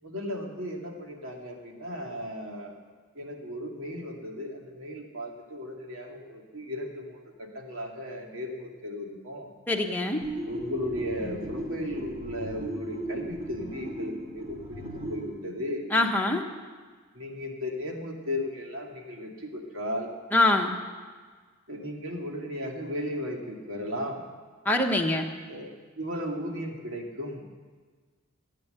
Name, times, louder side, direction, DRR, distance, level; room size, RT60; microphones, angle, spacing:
voice 1, 0.0-2.8 3.1-9.5 10.5-15.9 17.1-20.1 21.7-24.2 25.5-27.4, left 1 dB, 70° right, 0 dB, 2.4 m, -36 dB
voice 2, 9.7-10.2 15.9-16.4 20.3-20.7 24.6-25.3, left 2 dB, 10° left, 1 dB, 1.1 m, -24 dB
sound 1, 10.2-15.3, right 1 dB, 30° right, 2.9 m, -36 dB
17.0 x 9.2 x 7.9 m, 1.5 s
head